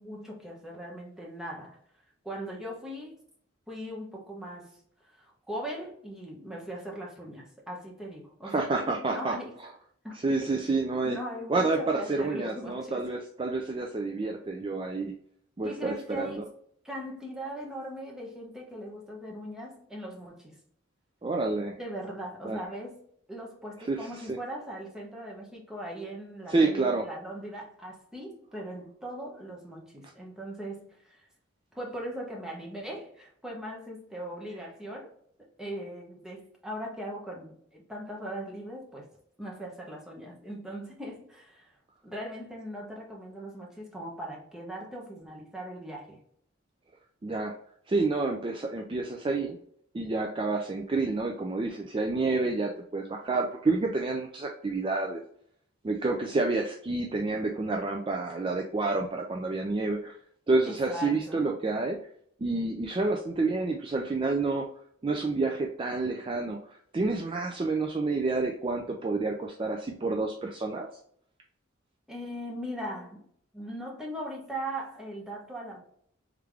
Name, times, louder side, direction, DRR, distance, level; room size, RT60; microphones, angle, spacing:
voice 1, 0.0-1.8 2.2-3.2 3.7-9.5 10.0-10.5 11.0-13.2 15.6-16.5 16.8-20.6 21.8-23.0 23.3-31.3 31.7-35.1 35.6-39.1 39.4-41.7 42.0-46.2 60.6-61.4 72.1-73.3 73.5-75.8, right 1 dB, 5° right, -2 dB, 0.9 m, -39 dB
voice 2, 8.4-9.3 10.2-11.2 11.5-15.1 15.6-16.4 21.2-21.8 22.4-22.6 23.9-24.4 26.5-27.0 47.2-47.5 47.9-49.6 49.9-55.2 55.8-60.2 60.5-62.0 62.4-64.7 65.0-66.6 66.9-70.9, right 3 dB, 25° right, 2 dB, 0.3 m, -29 dB
3.5 x 3.5 x 3.3 m, 0.65 s
head